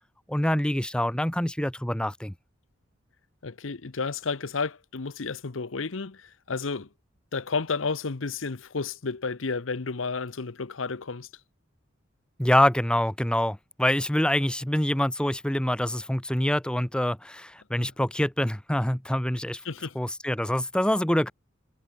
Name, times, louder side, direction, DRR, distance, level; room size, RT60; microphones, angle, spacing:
voice 1, 0.3-2.3 12.4-19.6 19.9-21.3, left 1 dB, 5° left, 0.8 m, -25 dB
voice 2, 3.4-6.9 7.3-11.3 17.8-17.9 19.6-20.0, left 4 dB, 85° left, 0.9 m, -31 dB
head